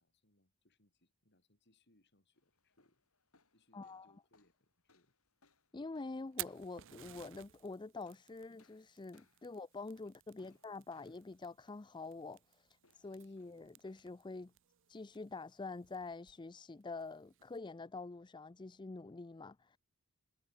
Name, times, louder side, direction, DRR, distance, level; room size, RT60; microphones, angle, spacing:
voice 1, 0.0-3.0 3.5-5.1 10.4-10.6 13.0-13.4, left 1 dB, 50° left, 6.6 m, -74 dB
sound 1, 2.3-16.6, left 4 dB, 75° left, 4.6 m, -76 dB
voice 2, 3.7-4.1 5.7-14.5 14.9-19.8, left 3 dB, 20° left, 0.4 m, -46 dB
Fire, 6.1-17.6, right 16 dB, 60° right, 0.6 m, -54 dB
head